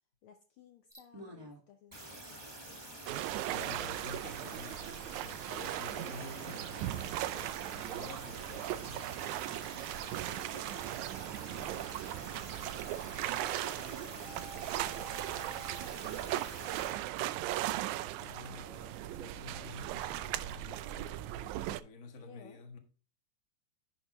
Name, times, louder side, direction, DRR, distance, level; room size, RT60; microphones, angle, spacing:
voice 1, 0.2-3.2 10.3-10.8 11.4-12.8 13.4-17.6 22.2-22.6, left 7 dB, 80° left, 1.2 m, -58 dB
sound 1, 0.9-1.6 1.9-16.9, right 1 dB, 15° right, 0.9 m, -48 dB
sound 2, 3.1-21.8, right 14 dB, 80° right, 1.8 m, -38 dB
voice 2, 3.5-9.2 18.1-21.1 21.8-22.8, left 4 dB, 40° left, 1.1 m, -50 dB
sound 3, 14.2-15.8, right 3 dB, 60° right, 1.2 m, -49 dB
10.5 x 6.9 x 3.1 m
omnidirectional pair, 3.5 m